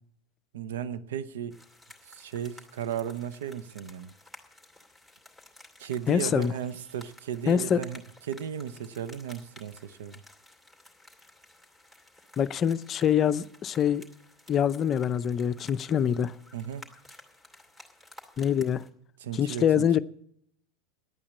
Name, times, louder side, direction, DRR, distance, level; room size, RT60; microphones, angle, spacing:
voice 1, 0.5-1.6 2.1-4.1 5.8-8.0 8.3-10.2 16.5-16.9 19.2-20.0, right 9 dB, 75° right, 0.7 m, -35 dB
sound 1, 1.5-18.9, left 2 dB, 5° right, 2.5 m, -54 dB
voice 2, 6.1-6.5 7.5-7.8 12.4-14.0 14.5-16.3 18.4-18.8 19.3-20.0, left 8 dB, 35° left, 0.5 m, -25 dB
11.0 x 8.7 x 8.3 m
hypercardioid pair, 95°, 0 cm